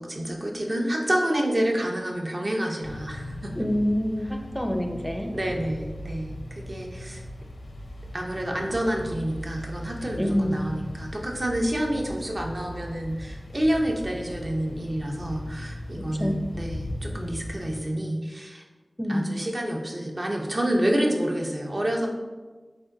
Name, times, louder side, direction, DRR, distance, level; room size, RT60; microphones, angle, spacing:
voice 1, 0.0-3.5 5.3-7.2 8.1-18.6 19.1-22.1, right 1 dB, 45° right, 0 dB, 0.7 m, -28 dB
sound 1, 2.8-17.8, left 1 dB, 90° left, 0.5 m, -39 dB
voice 2, 3.5-5.3 10.2-10.7 16.2-16.4 19.0-19.3, equal, 5° left, 3 dB, 0.5 m, -26 dB
7.6 x 2.5 x 2.7 m, 1.3 s
wide cardioid pair, 60°, 0 cm